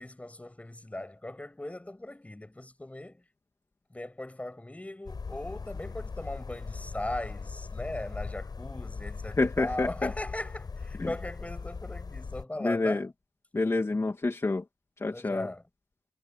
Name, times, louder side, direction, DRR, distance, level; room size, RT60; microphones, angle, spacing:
voice 1, 0.0-3.2 3.9-13.1 15.1-15.6, left 1 dB, 15° left, 8.0 m, -38 dB
sound 1, 5.1-12.4, left 4 dB, 55° left, 6.9 m, -39 dB
voice 2, 9.4-10.1 11.0-11.1 12.6-13.1 13.5-14.6 15.0-15.5, left 3 dB, 35° left, 2.5 m, -28 dB
wide cardioid pair, 95°, 8 cm